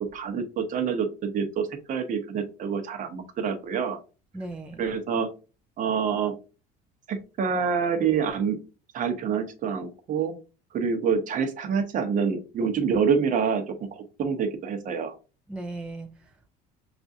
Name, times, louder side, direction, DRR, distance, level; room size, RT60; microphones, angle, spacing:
voice 1, 0.1-4.0 4.8-5.3 5.8-6.3 7.1-8.6 8.9-10.4 10.7-15.1, right 6 dB, 45° right, 0.9 m, -27 dB
voice 2, 4.3-4.8 15.5-16.5, right 2 dB, 5° right, 0.4 m, -37 dB
5.9 x 2.5 x 2.6 m
cardioid pair, 115°, 18 cm